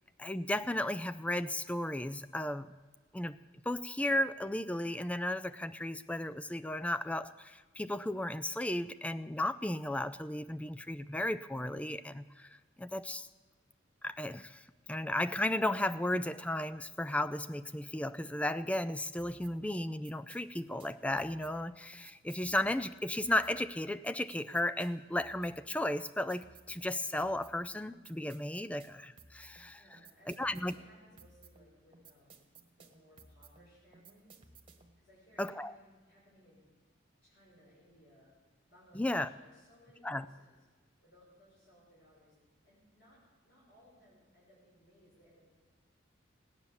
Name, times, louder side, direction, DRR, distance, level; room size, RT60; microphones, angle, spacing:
voice 1, 0.2-2.7 3.1-3.4 3.7-13.3 14.0-29.8 30.3-30.7 35.4-35.7 38.9-39.3 40.0-40.3, left 1 dB, 5° left, 12 dB, 0.4 m, -34 dB
sound 1, 19.2-35.0, right 4 dB, 25° right, 1.4 m, -59 dB
voice 2, 29.8-34.4 35.0-36.6 37.2-38.3 38.6-40.6 41.0-42.3 42.6-43.2 43.4-45.5, equal, 55° left, -7 dB, 6.1 m, -63 dB
18.0 x 9.9 x 7.1 m, 1.4 s
head